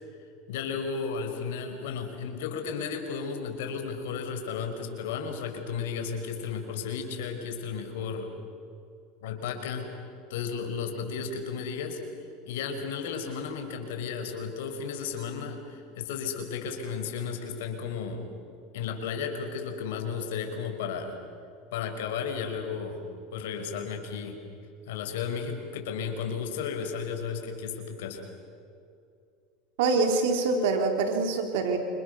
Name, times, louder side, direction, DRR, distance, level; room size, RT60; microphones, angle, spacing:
voice 1, 0.5-8.3 9.2-9.9 10.3-18.3 18.7-21.2 21.7-23.0 23.3-24.4 24.9-28.3, left 6 dB, 85° left, 4 dB, 5.4 m, -34 dB
voice 2, 29.8-31.8, right 4 dB, 80° right, 4 dB, 3.6 m, -25 dB
28.5 x 27.0 x 6.9 m, 2.5 s
supercardioid pair, 125°, 0 cm